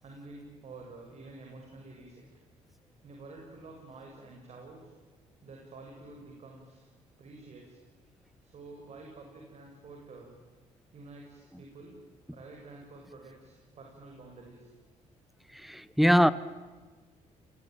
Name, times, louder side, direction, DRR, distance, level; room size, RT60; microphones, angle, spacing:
voice 1, 0.0-2.2 3.0-4.9 5.4-6.9 7.2-7.8 8.4-10.4 10.9-11.9 12.3-14.7, right 3 dB, 55° right, 6.9 m, -49 dB
voice 2, 15.7-16.3, equal, ahead, 1.3 m, -21 dB
30.0 x 21.5 x 9.2 m
cardioid pair, 95°, 14 cm